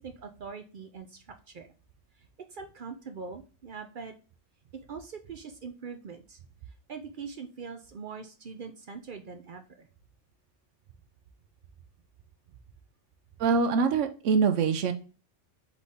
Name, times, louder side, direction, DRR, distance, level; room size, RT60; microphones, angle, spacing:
voice 1, 0.0-1.7 2.1-4.1 4.7-9.9 12.5-12.6, right 5 dB, 55° right, 6 dB, 0.6 m, -43 dB
voice 2, 13.4-14.9, right 5 dB, 80° right, 8 dB, 1.0 m, -24 dB
4.1 x 3.4 x 3.5 m, 0.35 s
omnidirectional pair, 1.3 m